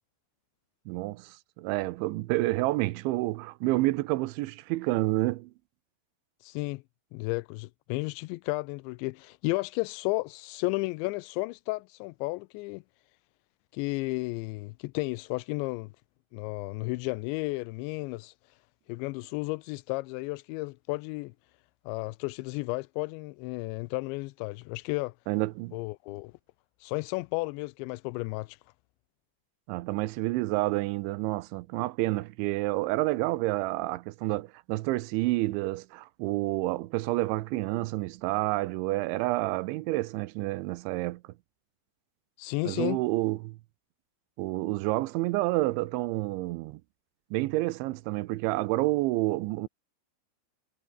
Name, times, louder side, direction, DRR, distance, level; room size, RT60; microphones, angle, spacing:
voice 1, 0.9-5.5 25.3-25.8 29.7-41.2 42.7-43.6 44.4-46.8 47.3-49.7, right 19 dB, 80° right, 2.9 m, -29 dB
voice 2, 6.4-6.8 7.1-12.8 13.7-15.9 16.3-18.3 18.9-21.3 21.9-25.1 25.7-26.3 26.8-28.6 42.4-43.0, left 24 dB, 90° left, 2.5 m, -33 dB
omnidirectional pair, 5.7 m